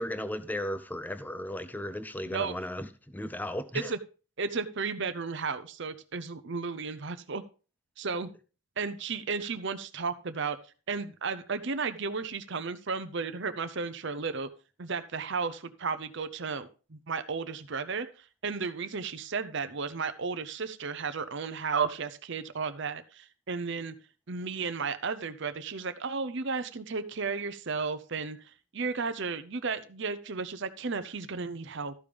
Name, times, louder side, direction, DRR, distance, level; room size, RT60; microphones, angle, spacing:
voice 1, 0.0-3.9, left 1 dB, 10° left, 0.5 m, -35 dB
voice 2, 4.4-7.4 8.0-8.3 8.8-10.6 10.9-14.5 14.8-18.1 18.4-23.9 24.3-28.4 28.7-31.9, right 5 dB, 55° right, 0.7 m, -33 dB
13.5 x 5.2 x 5.1 m
head